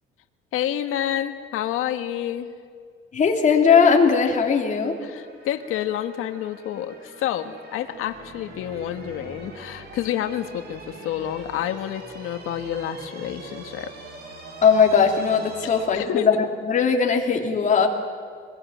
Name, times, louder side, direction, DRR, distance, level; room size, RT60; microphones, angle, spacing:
voice 1, 0.5-2.5 5.0-13.9 15.9-16.3, left 11 dB, 90° left, 8 dB, 1.5 m, -29 dB
voice 2, 3.1-4.9 14.6-16.3 16.7-17.9, left 6 dB, 35° left, 2 dB, 2.8 m, -19 dB
sound 1, 4.6-15.8, right 2 dB, 50° right, 4.3 m, -43 dB
24.0 x 20.0 x 9.2 m, 2.1 s
cardioid pair, 165°, 21 cm